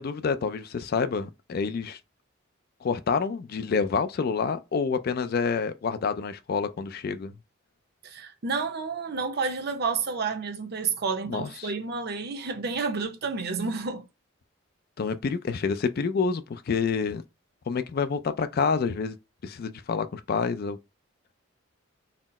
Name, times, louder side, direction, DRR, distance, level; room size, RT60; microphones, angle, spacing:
voice 1, 0.0-2.0 2.8-7.3 11.3-11.7 15.0-17.2 17.7-19.2 19.4-20.8, left 5 dB, 50° left, 0.4 m, -28 dB
voice 2, 8.0-14.1, right 4 dB, 50° right, 0.6 m, -30 dB
4.1 x 2.0 x 4.0 m
head